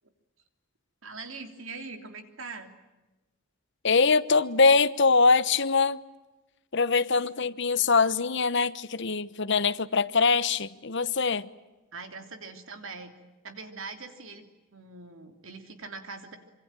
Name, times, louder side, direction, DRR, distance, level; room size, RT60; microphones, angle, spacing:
voice 1, 1.0-2.7 7.7-7.8 11.9-13.1 13.4-14.4 14.7-16.4, right 4 dB, 65° right, 3.2 m, -42 dB
voice 2, 3.8-6.0 6.7-11.5, left 4 dB, 55° left, 1.1 m, -23 dB
26.0 x 25.0 x 9.1 m
head